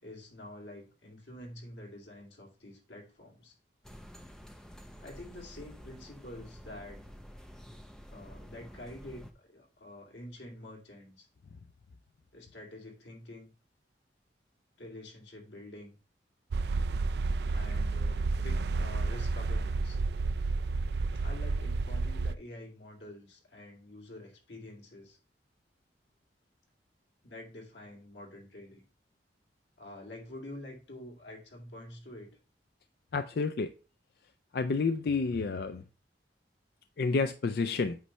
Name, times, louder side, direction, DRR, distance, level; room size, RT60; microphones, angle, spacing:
voice 1, 0.0-3.5 5.0-7.0 8.1-11.3 12.3-13.5 14.8-16.0 17.5-20.0 21.1-25.2 27.2-28.8 29.8-32.4, left 1 dB, 90° left, 0 dB, 2.5 m, -47 dB
sound 1, 3.8-9.3, equal, 5° left, 0.6 m, -50 dB
sound 2, 16.5-22.3, right 3 dB, 65° right, 0.4 m, -31 dB
voice 2, 33.1-33.7 34.5-35.8 37.0-38.0, left 4 dB, 60° left, 10 dB, 0.4 m, -29 dB
8.2 x 3.2 x 5.4 m, 0.34 s
head